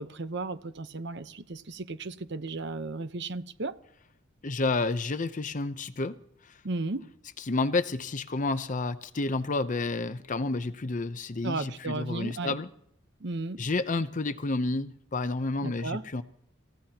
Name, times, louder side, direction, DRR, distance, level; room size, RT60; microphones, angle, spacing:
voice 1, 0.0-3.7 6.6-7.1 11.4-12.6 13.2-13.6 15.6-16.0, right 3 dB, 55° right, 0.9 m, -34 dB
voice 2, 4.4-6.2 6.4-6.6 7.4-12.7 13.6-16.2, left 3 dB, 40° left, 0.7 m, -30 dB
28.0 x 15.5 x 2.9 m
head